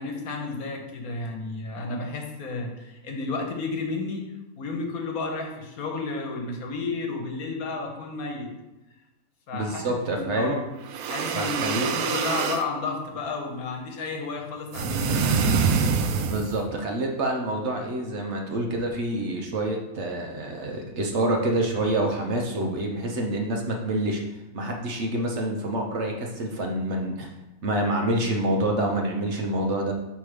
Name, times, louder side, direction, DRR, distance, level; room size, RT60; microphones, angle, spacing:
voice 1, 0.0-4.2 4.5-8.5 9.5-10.6 11.1-15.4, left 3 dB, 80° left, 2 dB, 1.4 m, -32 dB
voice 2, 9.5-10.6 11.3-11.9 16.3-24.2 24.5-27.3 27.6-29.9, right 1 dB, 55° right, 1 dB, 1.0 m, -27 dB
sound 1, 10.8-12.7 14.7-16.6, right 5 dB, 80° right, 1.0 m, -25 dB
5.9 x 3.4 x 4.9 m, 1.0 s
omnidirectional pair, 1.5 m